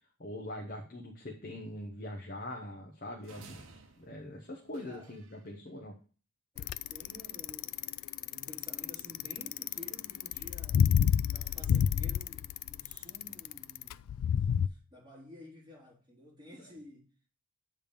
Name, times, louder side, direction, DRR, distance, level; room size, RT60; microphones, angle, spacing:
voice 1, 0.2-3.6 4.0-5.9, left 1 dB, 40° left, 1.0 m, -42 dB
sound 1, 3.2-5.5, right 3 dB, 60° right, 1.0 m, -54 dB
voice 2, 4.8-5.2 6.5-7.8 8.2-10.9 11.2-14.2 14.5-17.3, left 1 dB, 20° right, 4.1 m, -53 dB
Bicycle, 6.6-14.7, left 8 dB, 75° left, 0.3 m, -29 dB
8.8 x 3.6 x 6.9 m
head